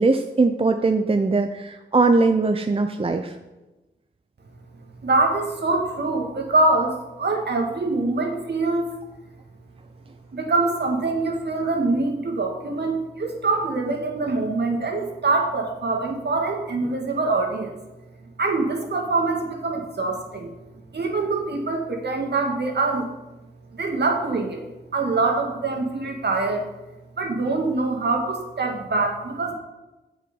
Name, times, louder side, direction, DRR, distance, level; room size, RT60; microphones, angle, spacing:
voice 1, 0.0-3.3, right 3 dB, 30° right, 6 dB, 0.7 m, -20 dB
voice 2, 5.0-8.9 10.3-17.8 18.4-20.5 20.9-23.1 23.7-24.6 24.9-26.7 27.2-29.5, right 3 dB, 55° right, 2 dB, 1.9 m, -24 dB
7.5 x 7.2 x 5.4 m, 1.1 s
supercardioid pair, 45°, 20 cm